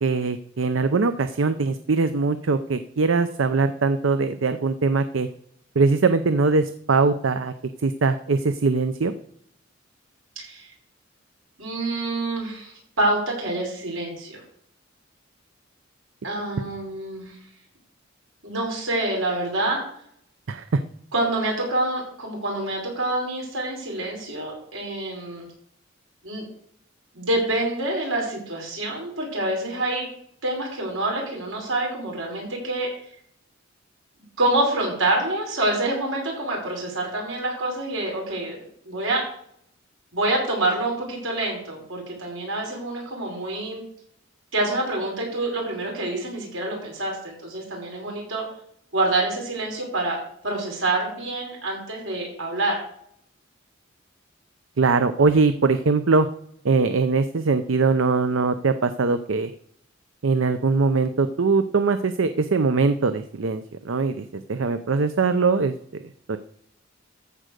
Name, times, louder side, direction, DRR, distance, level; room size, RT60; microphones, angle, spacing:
voice 1, 0.0-5.3 5.8-7.5 7.8-9.1 20.5-20.8 54.8-56.3 56.6-59.5 60.2-66.0 66.3-66.4, right 4 dB, 70° right, 11 dB, 0.6 m, -21 dB
voice 2, 10.4-10.7 11.6-14.4 16.2-17.4 18.4-19.8 21.1-25.5 26.2-26.4 27.1-30.1 30.4-32.9 34.4-38.6 38.9-39.2 40.1-43.8 44.5-48.4 48.9-52.8, right 2 dB, 85° right, -1 dB, 5.3 m, -26 dB
14.0 x 5.0 x 6.6 m, 0.68 s
head